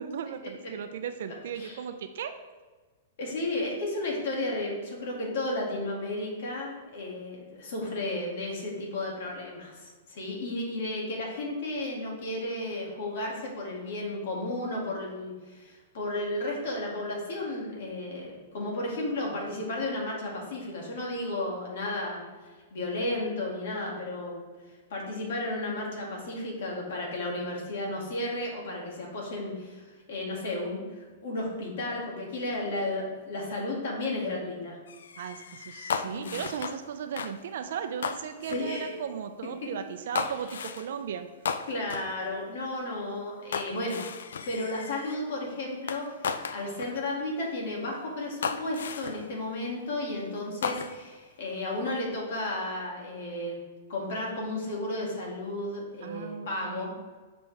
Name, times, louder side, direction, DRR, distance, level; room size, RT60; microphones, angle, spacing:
voice 1, 0.0-2.3 35.2-41.3 43.7-43.9 50.5-50.6 56.0-57.0, right 7 dB, 70° right, 8 dB, 0.5 m, -36 dB
voice 2, 3.2-24.4 24.9-34.8 36.0-36.3 38.5-38.9 41.7-44.0 44.4-53.6 53.9-56.9, left 2 dB, 70° left, -2 dB, 2.2 m, -33 dB
sound 1, 34.9-36.9 37.2-37.4 38.0-38.7 40.1-40.9 41.4-42.1 43.5-45.2 45.9-47.0 47.7-47.8 48.4-49.3 50.6-51.2, left 6 dB, 85° left, 0.4 m, -35 dB
7.0 x 5.1 x 3.4 m, 1.3 s
hypercardioid pair, 140°, 0 cm